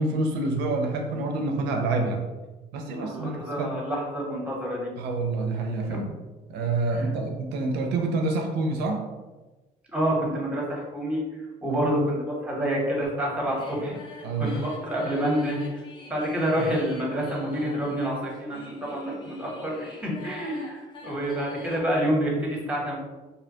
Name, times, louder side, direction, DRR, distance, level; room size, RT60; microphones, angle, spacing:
voice 1, 0.0-2.2 2.7-3.7 5.0-6.1 6.5-9.0 11.6-11.8 14.2-14.5, right 3 dB, 90° right, 3 dB, 0.4 m, -27 dB
voice 2, 3.0-4.9 5.9-6.2 6.9-7.0 9.9-11.2 11.6-14.0 14.4-15.8 16.1-23.0, equal, 5° right, -2 dB, 0.7 m, -28 dB
sound 1, 13.5-21.8, left 2 dB, 30° left, 0.5 m, -44 dB
2.7 x 2.1 x 2.6 m, 1.2 s
cardioid pair, 110°, 17 cm